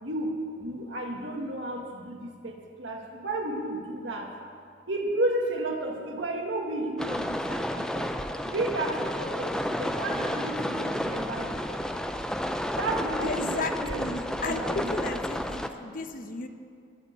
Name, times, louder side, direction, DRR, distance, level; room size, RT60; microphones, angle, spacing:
voice 1, 0.0-4.3 4.9-8.1 8.4-11.9 12.8-15.2, right 1 dB, 80° right, 1 dB, 2.0 m, -33 dB
sound 1, 7.0-15.7, equal, 5° left, 0.5 m, -31 dB
voice 2, 13.2-16.5, left 3 dB, 45° left, 7 dB, 0.9 m, -34 dB
20.0 x 6.7 x 8.5 m, 2.3 s
head